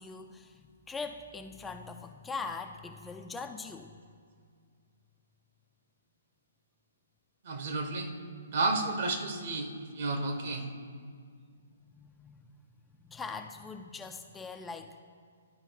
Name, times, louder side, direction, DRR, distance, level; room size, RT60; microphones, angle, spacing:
voice 1, 0.0-4.0 11.9-12.5 13.1-15.0, left 4 dB, 10° left, 5 dB, 0.4 m, -42 dB
voice 2, 7.4-8.1 8.5-10.7, right 3 dB, 55° right, 5 dB, 1.2 m, -32 dB
12.0 x 4.7 x 4.6 m, 2.1 s
hypercardioid pair, 135°, 0 cm